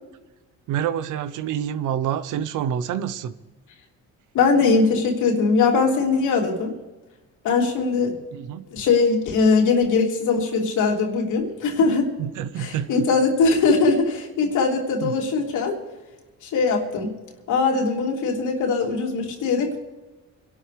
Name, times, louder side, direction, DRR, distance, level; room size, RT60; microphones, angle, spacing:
voice 1, 0.7-3.3 8.3-8.7 12.2-13.1 15.0-15.1, right 9 dB, 85° right, 13 dB, 0.8 m, -27 dB
voice 2, 4.3-6.7 7.4-8.1 8.7-12.1 12.6-15.8 16.4-17.1 17.5-19.8, left 4 dB, 85° left, 0 dB, 3.2 m, -21 dB
25.0 x 12.5 x 3.4 m, 1.2 s
cardioid pair, 90°, 30 cm